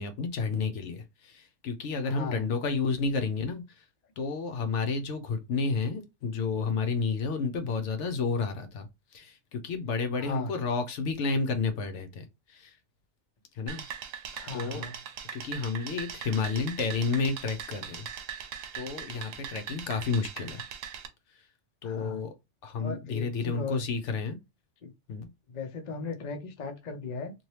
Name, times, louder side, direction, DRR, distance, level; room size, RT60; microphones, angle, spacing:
voice 1, 0.0-3.6 4.2-8.9 9.1-12.7 13.6-13.8 14.5-14.8 15.3-18.1 18.4-18.5 18.7-20.6 21.8-22.3 22.6-24.4 25.1-25.3, left 4 dB, 70° left, 0.9 m, -31 dB
voice 2, 2.0-2.4 10.2-10.5 14.3-14.9 21.8-22.2 22.8-23.8 24.8-24.9 25.5-27.3, left 4 dB, 45° left, 0.6 m, -37 dB
sound 1, 13.7-21.1, right 8 dB, 85° right, 1.0 m, -40 dB
2.8 x 2.6 x 3.1 m
omnidirectional pair, 1.3 m